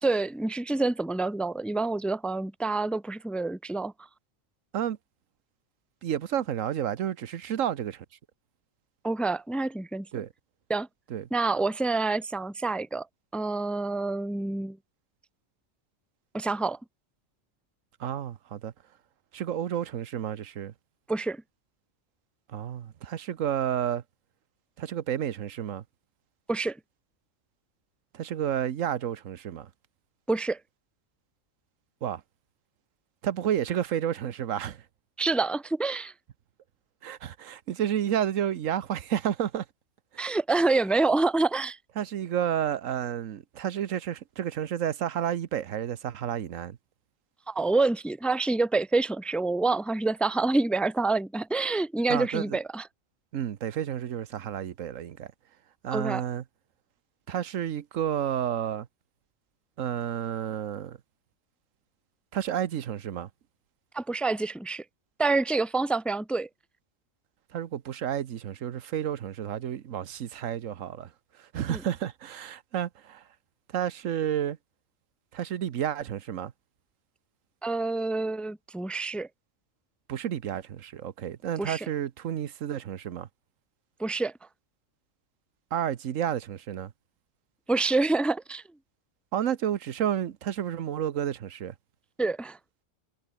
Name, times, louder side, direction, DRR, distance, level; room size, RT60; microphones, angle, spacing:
voice 1, 0.0-3.9 9.0-10.2 10.7-10.9 11.3-13.1 13.3-14.8 16.3-16.8 21.1-21.4 26.5-26.8 30.3-30.6 35.2-36.1 40.2-41.8 47.5-52.8 55.9-56.2 63.9-64.8 65.2-66.5 71.7-71.8 77.6-79.3 81.6-81.9 84.0-84.3 87.7-88.6 92.2-92.6, right 3 dB, ahead, 0.6 m, -27 dB
voice 2, 6.0-8.0 10.1-10.3 11.1-11.3 18.0-18.7 19.3-20.7 22.5-24.0 24.8-25.8 28.1-29.7 32.0-32.2 33.2-34.8 37.0-39.6 40.1-40.3 42.0-46.8 52.1-52.6 53.3-55.3 55.8-56.4 57.3-58.9 59.8-61.0 62.3-63.3 67.5-71.1 71.4-73.2 73.7-74.6 75.3-76.5 80.1-83.3 85.7-86.9 89.3-91.7, right 10 dB, 85° right, 1.3 m, -31 dB
omnidirectional pair, 1.3 m